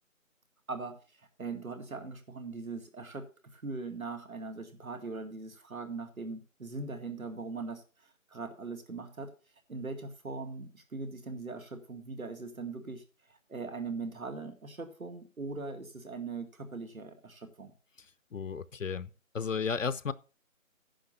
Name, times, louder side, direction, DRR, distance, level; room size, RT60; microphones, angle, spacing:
voice 1, 0.7-3.3 3.5-9.3 9.7-17.7, right 3 dB, 80° right, 2.2 m, -40 dB
voice 2, 18.3-19.1 19.3-20.1, left 6 dB, 65° left, 0.6 m, -33 dB
10.5 x 6.6 x 5.6 m
figure-of-eight pair, 170°, 41 cm